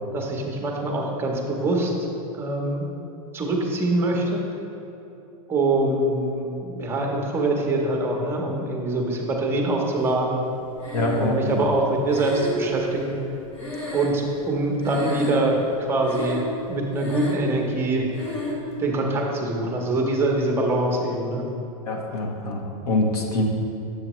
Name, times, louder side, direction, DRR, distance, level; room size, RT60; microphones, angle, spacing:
voice 1, 0.1-2.1 2.3-2.9 3.3-4.4 5.5-10.4 11.2-13.2 13.9-16.4 16.7-18.1 18.8-21.4, right 2 dB, 10° right, 0 dB, 0.8 m, -24 dB
Breathing, 10.8-11.5 12.1-14.6 14.8-15.6 16.0-16.6 16.9-17.6 18.1-18.6, equal, 35° left, 1.4 m, -32 dB
voice 2, 10.9-11.6 21.9-23.4, left 2 dB, 75° left, 0 dB, 1.3 m, -25 dB
7.4 x 7.3 x 3.0 m, 2.8 s
supercardioid pair, 150°, 19 cm